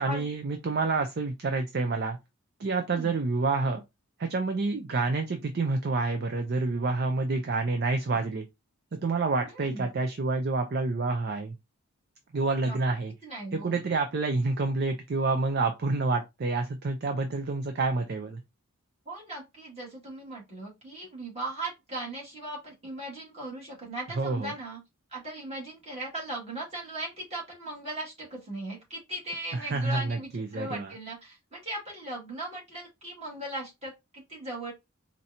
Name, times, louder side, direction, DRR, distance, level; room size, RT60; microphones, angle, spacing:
voice 1, 0.0-2.2 2.6-3.8 4.2-8.4 9.0-11.5 12.3-13.1 13.5-18.4 24.2-24.5 29.5-30.9, right 3 dB, 50° right, 0.5 m, -28 dB
voice 2, 13.2-13.8 19.1-24.8 25.1-34.7, right 1 dB, 30° right, 2.1 m, -38 dB
4.4 x 2.6 x 2.8 m
head